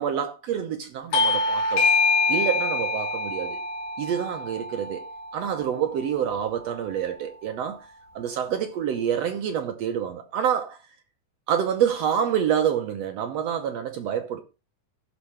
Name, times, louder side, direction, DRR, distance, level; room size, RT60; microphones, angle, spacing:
voice 1, 0.0-1.9 2.3-3.6 4.0-5.0 5.3-7.9 8.1-10.8 11.5-14.4, right 8 dB, 70° right, 1.6 m, -27 dB
Bell / Doorbell, 1.1-6.2, left 3 dB, 75° left, 2.5 m, -25 dB
15.5 x 6.1 x 3.2 m
omnidirectional pair, 3.8 m